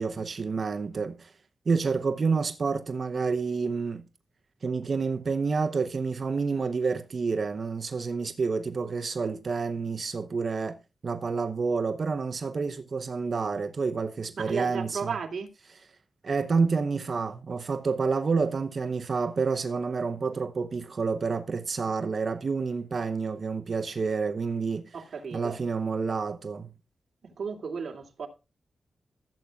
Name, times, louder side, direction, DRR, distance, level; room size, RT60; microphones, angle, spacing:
voice 1, 0.0-1.3 1.7-4.0 4.6-10.8 11.0-15.2 16.2-25.0 25.3-26.7, right 4 dB, 45° right, 0.8 m, -29 dB
voice 2, 14.3-15.5 24.9-25.6 27.2-28.3, right 5 dB, 60° right, 2.6 m, -34 dB
16.0 x 8.3 x 2.4 m
wide cardioid pair, 140°, 0 cm